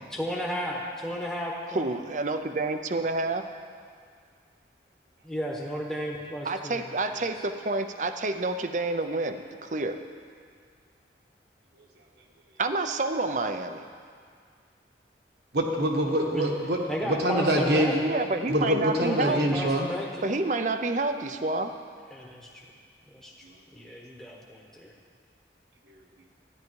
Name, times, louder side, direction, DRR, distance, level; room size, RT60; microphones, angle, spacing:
voice 1, 0.1-1.9 5.2-7.2 16.3-16.5 16.9-18.0 19.0-20.5 22.1-22.5 23.1-23.3 23.7-24.9, equal, 5° left, -3 dB, 1.1 m, -34 dB
voice 2, 1.7-3.4 6.4-10.0 12.6-13.9 18.0-19.6 20.2-21.7, right 2 dB, 45° right, 8 dB, 0.6 m, -29 dB
voice 3, 15.5-18.0 18.5-19.9, right 1 dB, 65° right, 0 dB, 1.5 m, -25 dB
13.0 x 10.5 x 4.7 m, 2.1 s
head